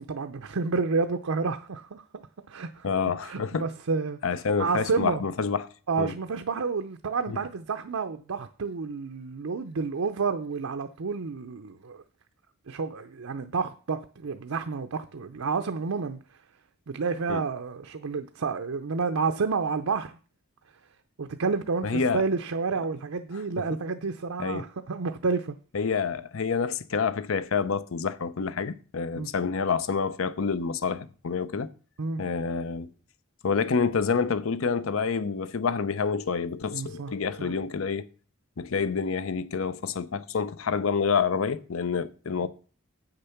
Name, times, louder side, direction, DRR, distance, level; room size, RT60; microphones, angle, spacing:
voice 1, 0.0-2.0 2.5-2.9 3.2-5.2 5.9-12.0 12.7-16.2 16.9-20.2 21.2-25.6 29.2-29.3 32.0-32.2 36.7-37.1 37.4-37.5, right 4 dB, 85° right, 0.6 m, -30 dB
voice 2, 2.8-3.7 4.2-5.7 6.0-6.1 7.3-7.4 17.3-17.4 21.8-22.2 24.4-24.6 25.7-31.7 32.2-32.9 33.4-38.0 38.6-42.5, left 5 dB, 75° left, 0.6 m, -28 dB
7.9 x 6.7 x 5.8 m
head